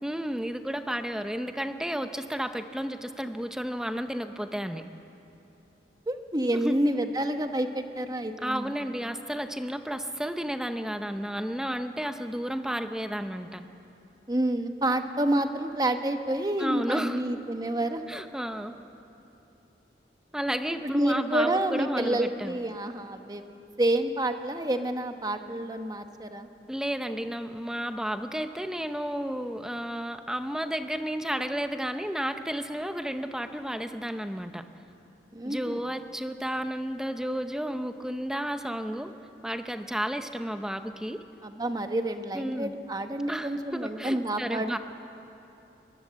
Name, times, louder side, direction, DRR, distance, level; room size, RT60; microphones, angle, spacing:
voice 1, 0.0-4.8 6.5-6.7 8.4-13.6 16.6-17.2 18.1-18.7 20.3-22.6 26.7-34.6 35.4-39.1 39.4-41.2 42.3-42.7 43.3-44.8, equal, 5° right, 8 dB, 0.8 m, -32 dB
voice 2, 6.1-8.8 14.3-18.0 20.8-23.4 23.8-26.5 35.3-35.8 41.4-44.8, right 1 dB, 20° right, 7 dB, 1.1 m, -28 dB
22.0 x 21.5 x 7.6 m, 2.9 s
head